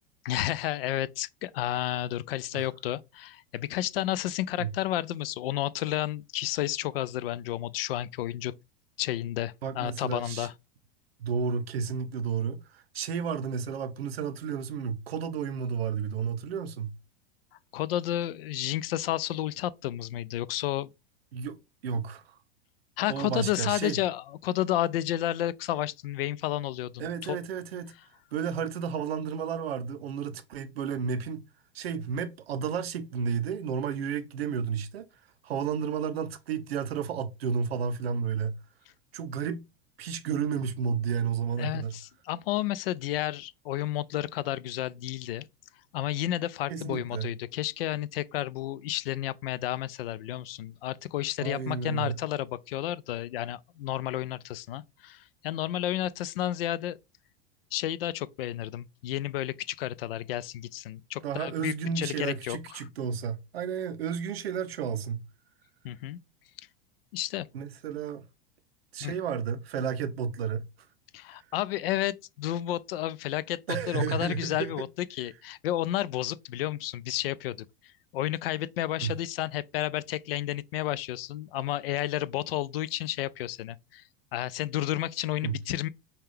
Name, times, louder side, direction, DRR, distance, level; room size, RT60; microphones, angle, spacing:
voice 1, 0.2-8.5 9.0-10.5 17.7-20.9 23.0-27.4 41.6-45.4 45.9-57.0 57.7-62.8 65.8-66.2 67.1-67.5 69.0-69.1 71.1-73.6 73.9-77.7 78.1-84.0 84.3-85.9, left 13 dB, 75° left, 0.5 m, -31 dB
voice 2, 9.6-10.5 11.2-17.0 21.3-22.4 23.1-24.0 27.0-27.9 28.3-31.5 31.7-35.0 35.4-38.6 39.1-39.6 40.0-41.9 46.7-47.3 51.4-52.2 61.2-65.3 67.5-68.2 68.9-70.7 73.7-74.7 79.0-79.2 85.4-85.6, right 6 dB, 85° right, 0.6 m, -32 dB
5.4 x 2.3 x 3.3 m
hypercardioid pair, 100°, 30 cm